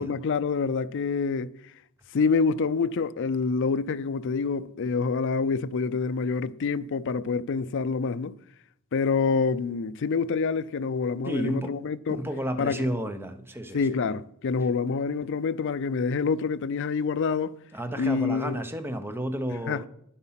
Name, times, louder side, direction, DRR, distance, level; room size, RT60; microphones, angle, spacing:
voice 1, 0.0-1.5 2.1-8.4 8.9-12.2 12.6-12.9 13.7-17.5 18.0-18.6 19.7-19.9, left 5 dB, 55° left, 0.4 m, -27 dB
voice 2, 11.3-11.7 12.1-14.0 17.7-19.9, equal, 10° right, 0.7 m, -31 dB
9.8 x 7.9 x 5.7 m
head